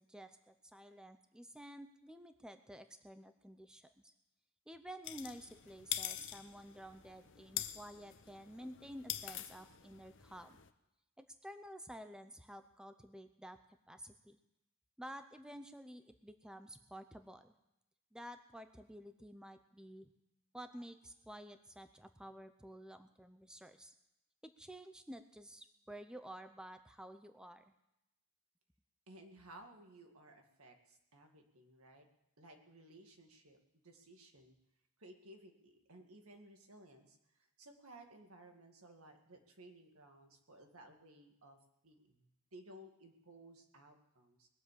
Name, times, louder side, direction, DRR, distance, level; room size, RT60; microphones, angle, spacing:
voice 1, 0.0-4.1 4.7-10.6 11.2-13.6 13.9-14.4 15.0-17.5 18.1-20.1 20.5-23.9 24.4-27.6, equal, 5° right, 9 dB, 0.6 m, -52 dB
sound 1, 5.0-10.7, left 12 dB, 60° left, 0.8 m, -45 dB
voice 2, 29.1-32.1 32.4-33.6 33.8-34.6 35.0-41.6 41.8-44.5, right 1 dB, 75° right, 4 dB, 2.1 m, -58 dB
20.5 x 7.5 x 8.3 m, 0.86 s
head